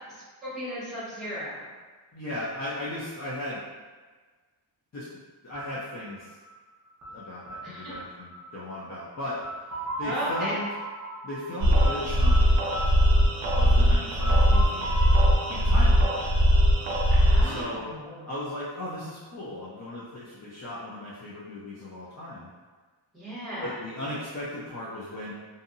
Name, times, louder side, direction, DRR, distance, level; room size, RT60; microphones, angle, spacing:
voice 1, 0.1-1.7 7.6-7.8 10.0-10.5 13.6-14.0 17.1-18.3 23.1-23.8, equal, ahead, -10 dB, 1.2 m, -36 dB
voice 2, 2.1-3.6 4.9-5.1 5.4-6.3 7.1-9.4 10.0-10.7 11.2-12.6 13.5-14.9 15.5-16.1 17.4-17.9 18.3-22.5 23.6-25.3, left 1 dB, 35° left, -8 dB, 0.5 m, -36 dB
Stratus Plucks, 5.5-17.3, right 1 dB, 35° right, 0.8 m, -38 dB
sound 1, 11.6-17.6, equal, 75° right, 0.6 m, -20 dB
2.6 x 2.5 x 2.6 m, 1.4 s
wide cardioid pair, 140°, 46 cm